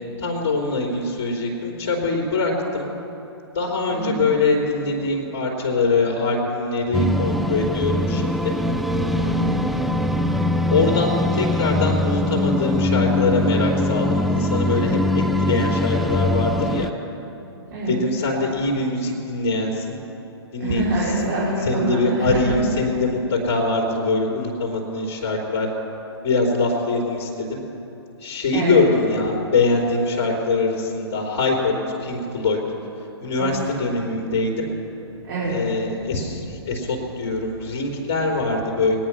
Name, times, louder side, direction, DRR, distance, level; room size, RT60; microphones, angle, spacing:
voice 1, 0.2-2.9 3.5-8.5 10.7-16.9 17.9-20.0 20.5-20.9 21.7-25.7 26.2-27.6 28.2-31.7 32.0-32.6 33.2-34.7 35.5-39.0, left 3 dB, 35° left, -4 dB, 3.5 m, -23 dB
voice 2, 3.9-4.3 9.1-9.7 17.7-18.0 20.6-22.6 28.5-28.8 33.4-33.7 35.2-35.6, right 2 dB, 55° right, -8 dB, 4.7 m, -25 dB
sound 1, 6.9-16.9, left 1 dB, ahead, 0.3 m, -22 dB
22.0 x 9.6 x 6.1 m, 2.9 s
figure-of-eight pair, 125°, 14 cm